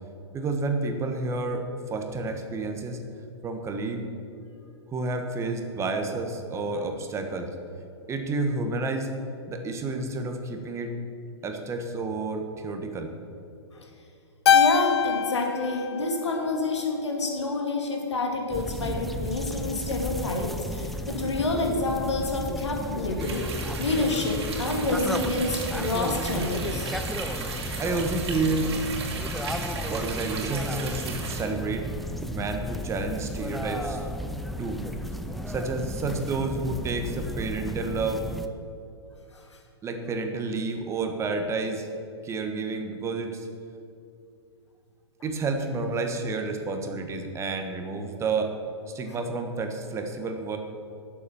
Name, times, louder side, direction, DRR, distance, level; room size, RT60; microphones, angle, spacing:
voice 1, 0.3-3.0 3.4-4.0 4.9-7.5 8.1-9.1 9.5-10.9 11.4-13.1 27.8-28.7 29.9-31.9 32.3-34.1 34.6-34.8 35.5-38.2 39.8-41.9 42.2-43.5 45.2-48.5 48.9-50.6, right 3 dB, 20° right, 5 dB, 1.3 m, -30 dB
voice 2, 14.5-26.9 29.1-29.5 39.3-39.5, left 2 dB, 85° left, 1 dB, 2.4 m, -28 dB
Keyboard (musical), 14.5-17.0, left 8 dB, 70° left, 0.5 m, -24 dB
sound 1, 18.5-38.5, equal, ahead, 0.6 m, -33 dB
sound 2, 23.2-31.4, right 5 dB, 65° right, 2.6 m, -36 dB
11.5 x 7.3 x 7.0 m, 2.6 s
hypercardioid pair, 120°, 14 cm